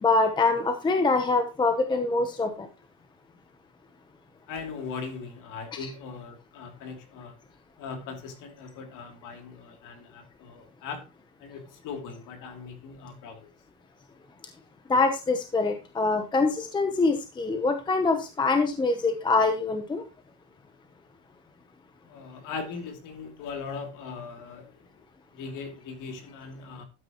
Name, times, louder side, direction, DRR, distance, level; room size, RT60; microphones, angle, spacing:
voice 1, 0.0-2.7 14.9-20.0, left 3 dB, 10° left, 0.8 m, -24 dB
voice 2, 4.5-7.3 7.8-11.0 11.4-13.5 22.1-24.9 25.3-26.9, left 5 dB, 50° left, 2.8 m, -39 dB
12.5 x 9.0 x 3.0 m
cardioid pair, 165°, 40 cm